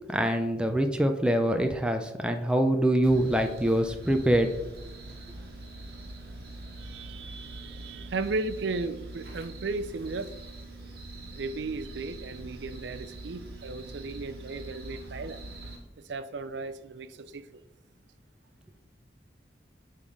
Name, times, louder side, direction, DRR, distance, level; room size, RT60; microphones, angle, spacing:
voice 1, 0.1-4.5, right 1 dB, 5° right, 0.5 m, -24 dB
sound 1, 3.0-15.8, right 2 dB, 60° right, 1.6 m, -43 dB
voice 2, 6.8-10.3 11.4-15.4 16.0-17.6, right 3 dB, 85° right, 0.5 m, -35 dB
8.2 x 3.8 x 4.9 m
head